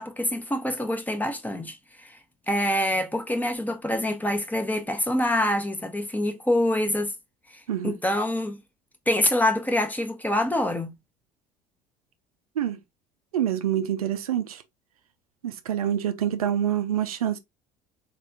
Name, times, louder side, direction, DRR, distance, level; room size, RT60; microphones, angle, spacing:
voice 1, 0.0-2.2 2.5-7.1 7.8-8.6 9.1-10.9, left 1 dB, 10° left, 0.9 m, -25 dB
voice 2, 13.3-14.6 15.4-17.4, right 10 dB, 75° right, 0.5 m, -26 dB
4.2 x 3.3 x 2.6 m
figure-of-eight pair, 60°, 19 cm